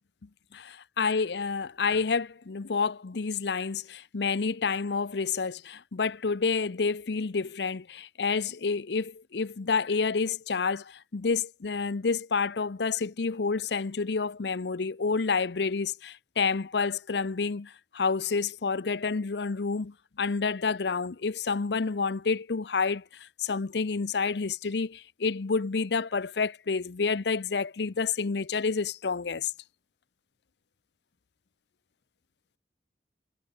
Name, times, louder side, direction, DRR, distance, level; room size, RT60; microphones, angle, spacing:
voice 1, 0.5-29.5, left 5 dB, 80° left, 0.7 m, -29 dB
head